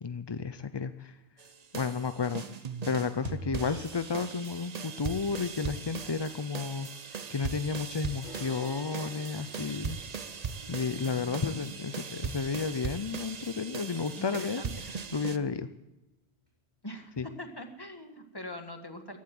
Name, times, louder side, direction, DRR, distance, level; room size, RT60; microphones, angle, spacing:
voice 1, 0.0-1.2 1.7-2.4 2.8-10.0 10.7-14.6 15.1-15.7 17.2-17.3, left 5 dB, 40° left, 11 dB, 0.4 m, -32 dB
sound 1, 1.4-15.4, right 6 dB, 40° right, 0.7 m, -39 dB
sound 2, 8.2-14.0 14.3-14.4 14.8-14.9 15.4-15.5 16.3-16.4, left 1 dB, 10° right, 4.3 m, -53 dB
voice 2, 10.9-11.7 14.2-14.7 16.8-19.2, left 1 dB, 20° left, 5 dB, 1.7 m, -43 dB
15.5 x 11.5 x 7.6 m, 0.98 s
omnidirectional pair, 1.2 m